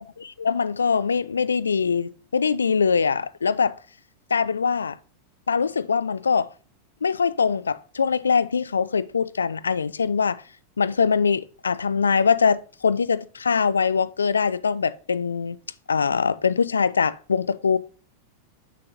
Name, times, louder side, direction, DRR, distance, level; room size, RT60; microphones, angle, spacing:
voice 1, 0.2-3.7 4.3-5.0 5.5-6.5 7.0-10.4 10.8-15.6 15.9-17.8, left 5 dB, 75° left, 0.3 m, -23 dB
7.0 x 5.8 x 2.6 m
figure-of-eight pair, 90°, 0 cm